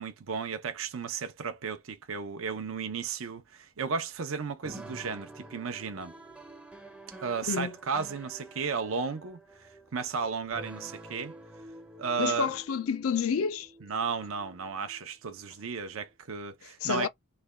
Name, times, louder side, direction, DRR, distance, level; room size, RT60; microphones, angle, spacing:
voice 1, 0.0-6.1 7.2-11.4 12.0-12.5 13.8-17.1, right 5 dB, 70° right, 0.6 m, -34 dB
sound 1, 4.6-16.1, right 1 dB, 5° right, 0.5 m, -49 dB
voice 2, 12.2-13.7 16.6-17.1, left 6 dB, 75° left, 0.4 m, -29 dB
3.2 x 2.2 x 3.4 m
head